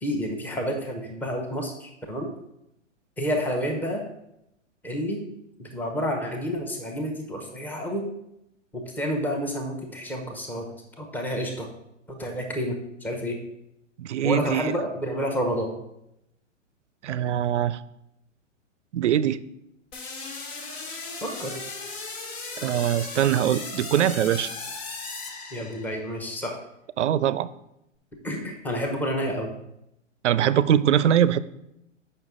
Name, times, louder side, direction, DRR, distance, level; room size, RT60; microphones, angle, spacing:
voice 1, 0.0-2.3 3.2-4.0 4.8-5.2 5.6-8.1 8.7-10.7 11.0-11.7 12.1-13.4 14.2-15.7 21.2-21.6 25.5-26.6 28.2-29.5, equal, 5° left, 2 dB, 0.8 m, -29 dB
voice 2, 14.0-14.8 17.0-17.8 18.9-19.5 22.6-24.5 27.0-27.5 30.2-31.4, right 10 dB, 65° right, 17 dB, 0.5 m, -22 dB
sound 1, 19.9-26.1, left 3 dB, 55° left, 1.6 m, -37 dB
7.8 x 5.7 x 3.7 m, 0.83 s
figure-of-eight pair, 120°, 38 cm